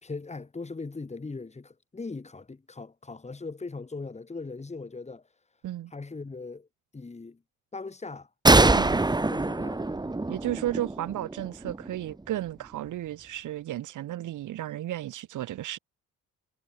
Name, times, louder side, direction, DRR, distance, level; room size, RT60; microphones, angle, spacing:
voice 1, 0.0-5.2 5.9-6.7 6.9-7.4 7.7-8.3 8.5-9.9, left 3 dB, 20° left, 3.2 m, -39 dB
sound 1, 8.5-12.0, right 2 dB, 15° right, 1.8 m, -24 dB
voice 2, 10.3-15.8, right 13 dB, 80° right, 5.4 m, -33 dB
cardioid pair, 90°, 30 cm